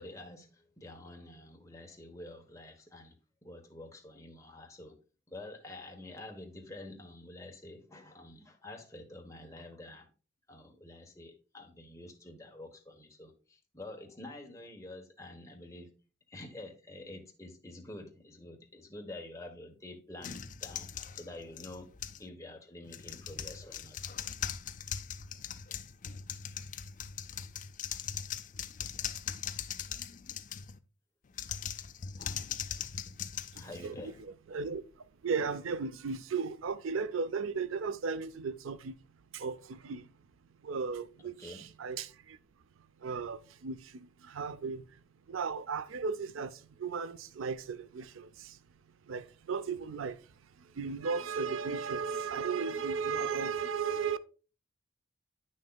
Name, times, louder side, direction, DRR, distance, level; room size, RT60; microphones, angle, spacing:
voice 1, 0.0-3.1 3.4-5.0 5.3-10.1 10.5-15.9 16.3-21.9 22.2-24.0 33.5-34.1 41.4-41.7, left 1 dB, 15° left, 1.1 m, -48 dB
sound 1, 20.2-22.3 22.8-30.8 31.3-34.2, left 8 dB, 40° left, 0.4 m, -40 dB
voice 2, 33.5-38.9 39.3-40.1 40.6-42.4 43.0-45.0 45.3-48.6 49.0-54.2, right 5 dB, 80° right, 0.5 m, -36 dB
9.0 x 6.3 x 2.3 m
head